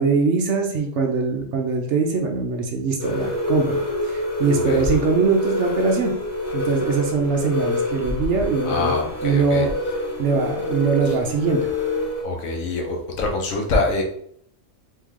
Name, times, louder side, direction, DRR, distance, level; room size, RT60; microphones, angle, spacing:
voice 1, 0.0-6.2 6.5-9.7 10.2-11.7, right 4 dB, 65° right, 3 dB, 0.9 m, -22 dB
sound 1, 3.0-12.2, left 2 dB, 40° left, 1.4 m, -26 dB
voice 2, 8.6-9.7 11.1-11.2 12.2-14.0, left 2 dB, 75° left, 1 dB, 1.3 m, -25 dB
3.6 x 3.2 x 3.6 m, 0.67 s
omnidirectional pair, 1.4 m